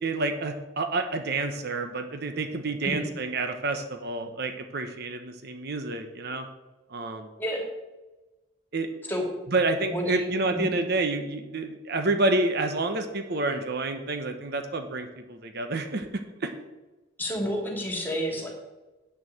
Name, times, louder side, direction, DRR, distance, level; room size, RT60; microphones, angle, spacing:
voice 1, 0.0-6.5 6.9-7.3 8.7-8.9 9.5-16.1 16.4-16.5, right 2 dB, 60° right, 7 dB, 1.1 m, -28 dB
voice 2, 7.4-7.7 9.1-9.3 9.8-10.7 17.2-18.5, equal, 10° left, 0 dB, 2.8 m, -30 dB
8.8 x 6.8 x 7.8 m, 1.1 s
head